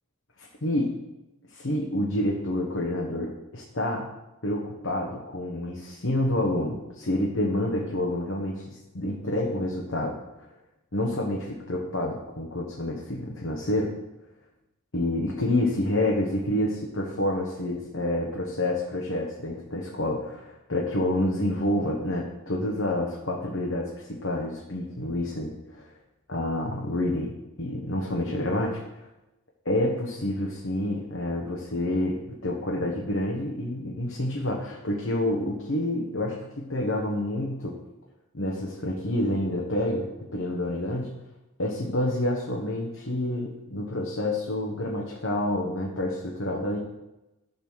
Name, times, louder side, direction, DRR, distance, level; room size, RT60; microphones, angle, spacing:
voice 1, 0.4-0.9 1.5-4.1 4.4-10.2 10.9-13.9 14.9-25.9 26.3-29.1 29.6-37.8 38.3-41.1 41.6-46.8, left 1 dB, 65° left, -2 dB, 1.2 m, -28 dB
10.5 x 4.2 x 6.3 m, 0.97 s
head